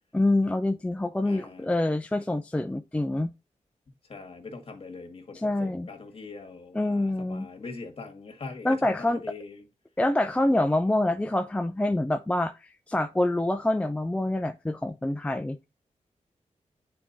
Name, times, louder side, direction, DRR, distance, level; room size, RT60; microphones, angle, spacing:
voice 1, 0.1-3.3 5.3-5.9 6.7-7.5 8.6-9.2 10.0-12.6 12.9-15.6, left 1 dB, 10° left, 0.4 m, -26 dB
voice 2, 1.2-1.7 4.1-9.6, left 4 dB, 50° left, 1.7 m, -42 dB
9.6 x 4.3 x 2.6 m
wide cardioid pair, 95°, 13 cm